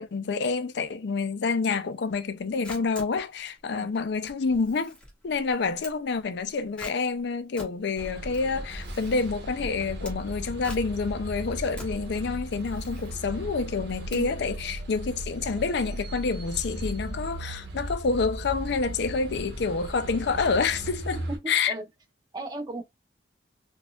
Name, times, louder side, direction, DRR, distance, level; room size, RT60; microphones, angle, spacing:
voice 1, 0.0-5.0 5.2-21.7, left 4 dB, 65° left, 0.4 m, -28 dB
Camera, 2.3-14.7, left 1 dB, 5° left, 1.1 m, -48 dB
sound 1, 8.0-21.4, right 1 dB, 60° right, 1.0 m, -37 dB
voice 2, 21.3-21.9 22.3-22.8, right 2 dB, 20° right, 0.8 m, -36 dB
4.2 x 2.3 x 2.3 m
head